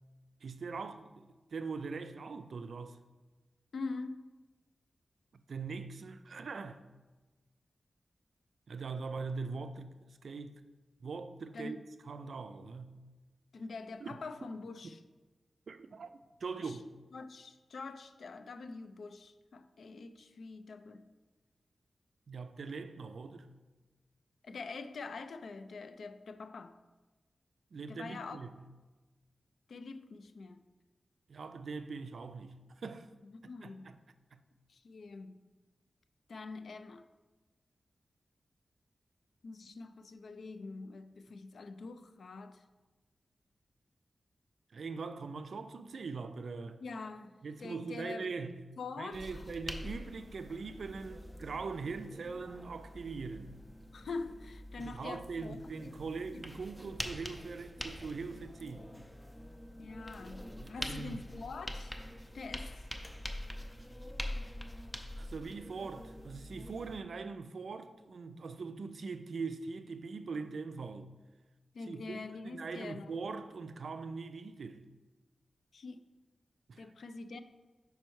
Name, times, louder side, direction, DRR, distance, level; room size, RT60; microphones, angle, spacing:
voice 1, 0.4-3.0 5.3-6.8 8.7-10.0 10.2-10.6 11.0-11.8 12.0-13.0 14.0-14.1 15.7-16.1 16.4-16.8 22.3-23.5 27.7-28.6 31.3-33.1 33.6-34.0 34.3-34.4 44.7-46.8 47.4-48.7 49.0-53.6 54.8-58.9 60.6-61.3 65.2-71.1 71.9-72.2 72.4-74.9 76.7-76.9, right 4 dB, 70° right, 0.3 m, -42 dB
voice 2, 3.7-4.3 11.5-11.8 13.5-15.0 16.5-16.8 17.1-21.1 24.4-26.8 27.9-28.4 29.7-30.6 33.2-33.9 34.7-35.4 36.3-37.0 39.4-42.6 46.8-47.3 47.6-48.3 48.8-49.4 53.9-55.9 56.3-56.5 59.8-61.9 62.3-62.7 65.8-65.9 71.7-73.1 75.7-76.0 76.8-77.4, left 3 dB, 75° left, 0.3 m, -45 dB
sound 1, 49.1-67.0, left 1 dB, 15° left, 0.4 m, -45 dB
5.3 x 4.4 x 4.6 m
wide cardioid pair, 120°, 0 cm